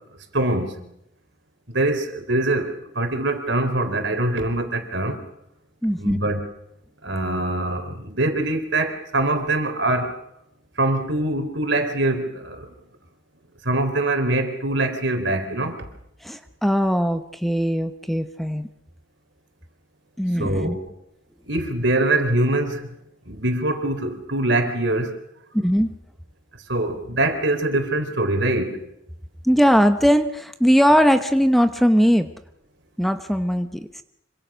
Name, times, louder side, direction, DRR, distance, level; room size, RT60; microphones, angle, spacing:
voice 1, 0.3-0.8 1.7-2.7 3.0-5.2 6.0-6.4 7.0-10.1 10.8-12.7 13.7-15.8 20.4-20.8 21.5-22.9 23.3-25.1 26.7-28.8, right 2 dB, 65° right, 7 dB, 3.9 m, -23 dB
voice 2, 5.8-6.2 16.2-18.7 20.2-20.8 25.5-26.0 29.4-32.3 33.0-34.0, equal, ahead, 8 dB, 0.9 m, -20 dB
26.0 x 25.0 x 6.3 m, 0.79 s
head